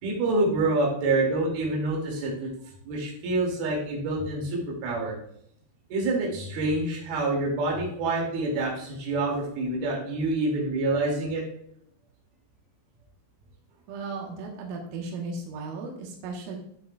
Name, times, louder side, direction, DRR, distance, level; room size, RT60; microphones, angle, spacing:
voice 1, 0.0-2.5 2.9-5.1 5.9-11.4, right 2 dB, 55° right, -2 dB, 3.9 m, -27 dB
voice 2, 13.9-16.6, right 3 dB, 85° right, 0 dB, 3.9 m, -36 dB
12.5 x 6.6 x 2.4 m, 0.68 s
omnidirectional pair, 5.8 m